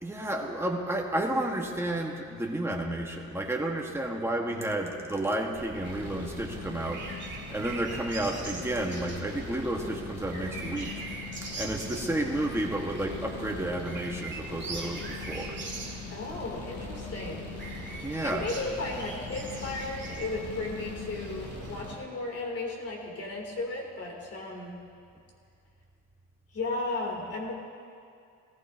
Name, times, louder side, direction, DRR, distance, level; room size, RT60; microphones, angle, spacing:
voice 1, 0.0-7.1 7.5-10.9 11.5-15.6 18.0-18.5, right 1 dB, 10° right, 0 dB, 1.7 m, -31 dB
voice 2, 4.4-4.8 16.1-17.5 17.9-24.8 26.5-27.5, left 2 dB, 50° left, -2 dB, 3.5 m, -35 dB
sound 1, 5.6-21.8, right 3 dB, 35° right, 2.4 m, -42 dB
sound 2, 5.8-22.0, left 4 dB, 70° left, 3.2 m, -42 dB
19.0 x 14.5 x 3.0 m, 2.4 s
cardioid pair, 90°, 30 cm